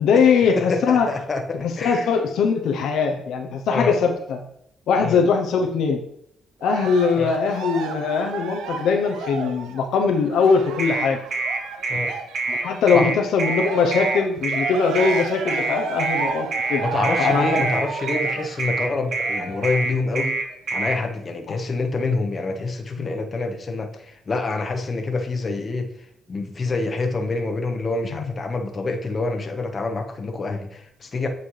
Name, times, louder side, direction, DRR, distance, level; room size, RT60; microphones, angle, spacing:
voice 1, 0.0-1.1 1.6-4.4 4.9-6.0 6.6-11.2 12.5-16.8 17.2-17.6 21.5-21.6 23.0-23.1 28.1-28.3, left 5 dB, 80° left, 3 dB, 0.7 m, -21 dB
voice 2, 0.6-2.1 3.7-3.9 5.0-5.2 7.1-7.3 11.9-12.1 12.9-13.1 16.8-20.4 20.7-31.3, left 3 dB, 35° left, 4 dB, 1.0 m, -26 dB
Cheering, 6.6-12.9 13.3-19.9 20.5-20.6, right 5 dB, 85° right, 0.6 m, -32 dB
sound 1, 10.8-21.0, right 3 dB, 55° right, 1.7 m, -26 dB
8.6 x 4.2 x 3.2 m, 0.72 s
cardioid pair, 90°, 0 cm